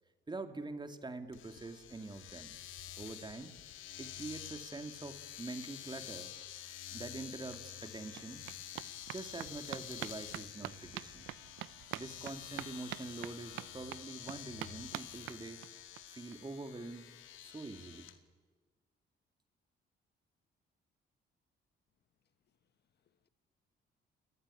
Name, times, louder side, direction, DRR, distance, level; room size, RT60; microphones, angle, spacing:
voice 1, 0.3-2.6 3.0-3.5 4.0-6.3 6.9-8.5 9.1-11.3 11.9-15.6 16.1-17.1 17.4-18.1, right 3 dB, 20° right, 2.5 m, -45 dB
Domestic sounds home sounds, 1.3-18.2, left 11 dB, 85° left, 1.9 m, -49 dB
sound 1, 7.2-7.3 7.5-16.0 16.3-16.4 16.7-16.8 17.0-17.1, right 15 dB, 85° right, 0.7 m, -47 dB
voice 2, 22.4-23.3, left 8 dB, 55° left, 1.5 m, -81 dB
29.5 x 19.0 x 9.8 m
cardioid pair, 90°, 20 cm